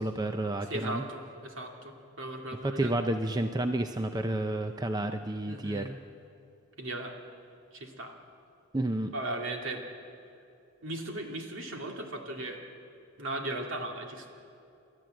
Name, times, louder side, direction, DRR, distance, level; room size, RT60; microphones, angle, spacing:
voice 1, 0.0-1.0 2.8-5.9 8.7-9.1, right 1 dB, 20° right, 6 dB, 0.6 m, -30 dB
voice 2, 0.6-3.0 5.5-5.9 6.8-7.1 7.7-8.1 9.1-9.8 10.8-12.6 13.2-14.3, right 1 dB, 65° right, 2 dB, 2.5 m, -37 dB
30.0 x 12.5 x 7.8 m, 2.6 s
head